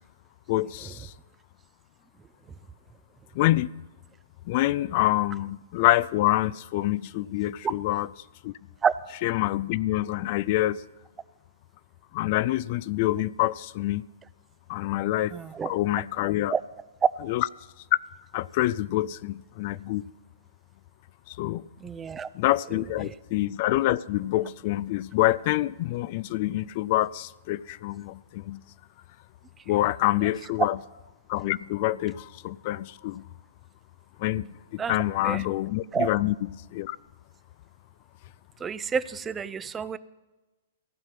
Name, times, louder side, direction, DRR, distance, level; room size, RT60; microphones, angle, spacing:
voice 1, 0.5-1.1 3.4-3.7 4.5-8.1 8.4-8.5 9.2-10.8 12.1-14.0 14.7-15.3 15.6-16.5 17.3-17.5 18.3-20.0 21.3-21.7 22.3-28.6 29.7-30.8 31.3-33.2 34.2-37.0, left 16 dB, 45° left, 0.3 m, -26 dB
voice 2, 15.3-15.7 16.5-16.6 21.8-22.3 23.0-23.1 34.8-34.9 35.2-35.4 35.9-36.1 38.6-40.0, right 6 dB, 15° right, 0.5 m, -29 dB
15.5 x 5.7 x 9.2 m
figure-of-eight pair, 110°, 0 cm